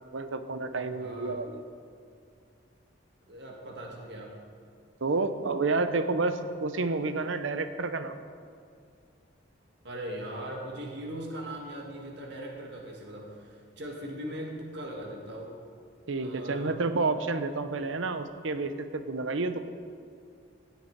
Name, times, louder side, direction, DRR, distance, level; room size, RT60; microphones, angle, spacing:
voice 1, 0.1-1.6 5.0-8.2 16.1-19.7, right 3 dB, 85° right, 10 dB, 0.8 m, -30 dB
voice 2, 1.0-1.4 3.3-4.3 9.8-15.5 16.2-16.8, right 1 dB, 60° right, 0 dB, 1.8 m, -39 dB
16.5 x 8.2 x 4.7 m, 2.4 s
head